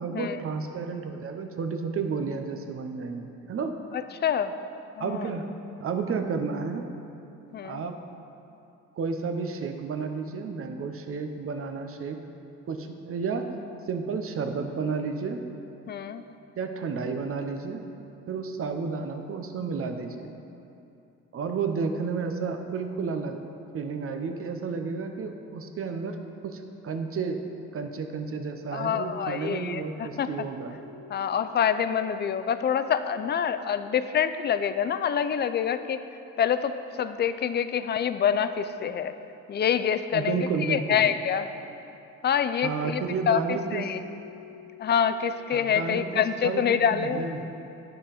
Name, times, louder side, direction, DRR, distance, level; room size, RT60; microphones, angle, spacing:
voice 1, 0.0-3.8 5.0-5.5 5.8-6.8 7.6-8.0 9.0-12.2 12.7-13.5 13.9-15.4 16.6-17.8 18.3-20.3 21.3-23.4 23.7-27.4 27.7-30.8 40.1-41.0 42.6-43.8 45.5-47.5, right 5 dB, 50° right, 6 dB, 0.7 m, -31 dB
voice 2, 3.9-4.5 5.0-5.3 7.5-7.8 15.9-16.3 28.7-30.5 31.1-36.0 36.4-39.1 39.5-41.5 42.2-44.0 44.8-47.3, left 8 dB, 35° left, 11 dB, 0.4 m, -26 dB
sound 1, 30.8-34.9 43.5-45.6, left 6 dB, 20° right, 1.1 m, -50 dB
10.5 x 3.9 x 5.0 m, 2.8 s
cardioid pair, 90°, 30 cm